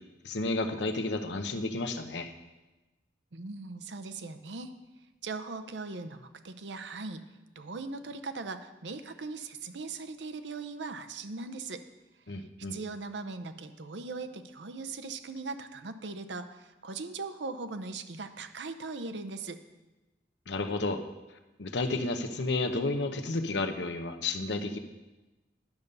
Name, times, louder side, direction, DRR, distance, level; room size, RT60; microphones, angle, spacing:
voice 1, 0.2-2.3 12.3-12.8 20.5-21.0 21.6-24.8, left 2 dB, 90° left, 7 dB, 0.8 m, -31 dB
voice 2, 3.3-4.7 5.2-7.3 7.6-11.8 12.3-19.6, right 3 dB, 85° right, 9 dB, 0.7 m, -39 dB
10.5 x 6.9 x 5.4 m, 1.1 s
head